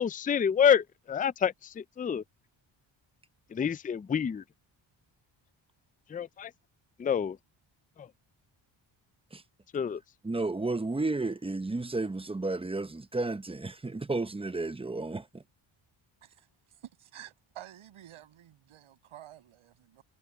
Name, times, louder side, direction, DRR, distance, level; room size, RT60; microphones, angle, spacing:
voice 1, 0.0-2.2 3.5-4.4 6.1-6.5 7.0-7.4 9.7-10.0, left 8 dB, 20° left, 0.4 m, -27 dB
voice 2, 10.2-15.2, right 2 dB, 10° right, 0.7 m, -32 dB
voice 3, 16.2-20.0, right 12 dB, 90° right, 6.3 m, -50 dB
cardioid pair, 95°, 48 cm